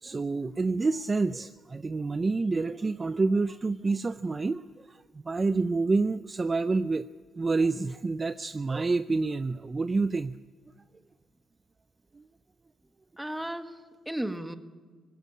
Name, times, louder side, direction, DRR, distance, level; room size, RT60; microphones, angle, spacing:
voice 1, 0.0-5.0 5.2-7.1 7.4-10.4 12.2-12.3, right 3 dB, 30° right, 0.5 m, -28 dB
voice 2, 13.2-14.6, right 1 dB, 5° right, 1.5 m, -35 dB
19.5 x 15.5 x 9.6 m
cardioid pair, 90°, 0 cm